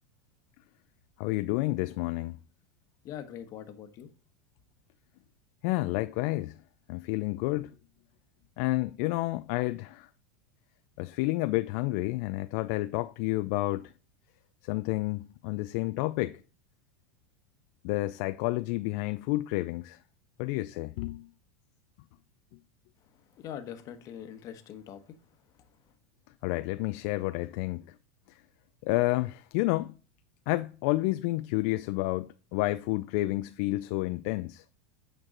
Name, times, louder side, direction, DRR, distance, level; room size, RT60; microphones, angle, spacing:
voice 1, 1.2-2.4 5.6-6.6 6.9-7.7 8.6-10.1 11.0-13.9 14.6-16.4 17.8-20.0 20.4-21.3 26.4-27.8 28.8-30.0 30.5-34.6, left 19 dB, 60° left, 0.4 m, -30 dB
voice 2, 3.0-4.1 23.0-25.9, left 9 dB, 45° left, 1.1 m, -44 dB
8.8 x 4.6 x 3.8 m
hypercardioid pair, 110°, 9 cm